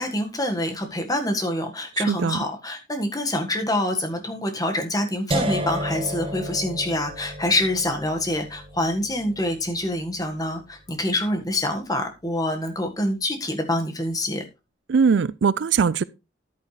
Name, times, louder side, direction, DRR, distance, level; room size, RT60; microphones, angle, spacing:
voice 1, 0.0-14.4, left 1 dB, 20° left, 1.6 m, -26 dB
voice 2, 2.1-2.4 14.9-16.0, right 5 dB, 65° right, 0.4 m, -20 dB
sound 1, 5.3-11.2, equal, 30° right, 1.1 m, -32 dB
10.5 x 8.9 x 3.2 m
head